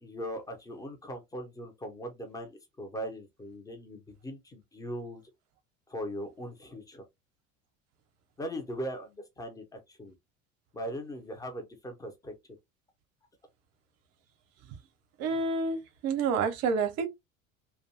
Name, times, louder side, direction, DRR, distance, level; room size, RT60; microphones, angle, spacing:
voice 1, 0.0-5.2 5.9-7.0 8.4-10.1 10.7-12.3, equal, 10° left, 0.6 m, -39 dB
voice 2, 15.2-17.1, right 4 dB, 40° right, 0.7 m, -29 dB
2.5 x 2.3 x 2.8 m
figure-of-eight pair, 65°, 40 cm